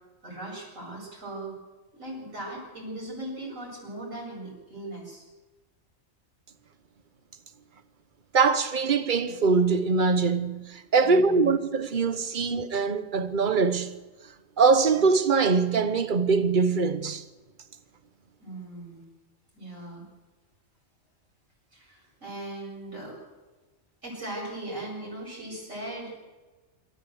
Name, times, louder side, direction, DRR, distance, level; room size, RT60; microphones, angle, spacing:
voice 1, 0.2-1.5 2.0-5.2 11.0-11.5 18.4-19.0 19.5-20.1 21.7-23.2 24.0-26.2, right 1 dB, 80° right, 8.6 m, -39 dB
voice 2, 8.3-13.9 14.6-17.2, right 4 dB, 40° right, 1.2 m, -23 dB
26.5 x 13.5 x 8.0 m
omnidirectional pair, 1.3 m